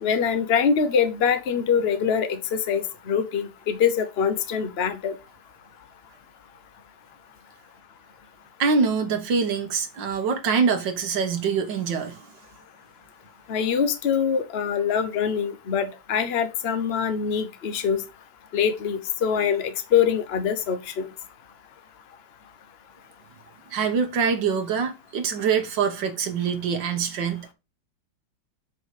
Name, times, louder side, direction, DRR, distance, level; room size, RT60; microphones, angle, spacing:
voice 1, 0.0-5.1 13.5-18.0 18.5-21.1, left 7 dB, 40° left, 1.0 m, -24 dB
voice 2, 8.6-12.3 23.7-27.5, right 5 dB, 75° right, 1.8 m, -24 dB
6.6 x 5.2 x 4.8 m
omnidirectional pair, 2.1 m